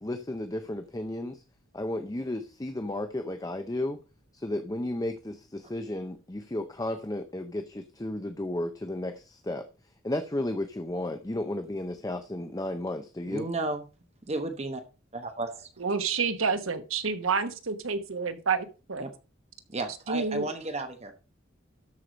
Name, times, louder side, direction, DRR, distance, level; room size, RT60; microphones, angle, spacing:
voice 1, 0.0-1.4 1.7-4.0 4.3-9.7 10.0-13.5, left 1 dB, 15° left, 7 dB, 0.6 m, -33 dB
voice 2, 13.3-13.8 14.3-14.8 15.1-15.7 19.0-19.1 19.7-21.1, right 2 dB, 30° right, 7 dB, 1.0 m, -33 dB
voice 3, 15.8-19.0 20.1-20.5, right 5 dB, 80° right, 9 dB, 1.1 m, -29 dB
12.5 x 4.8 x 5.1 m, 0.33 s
head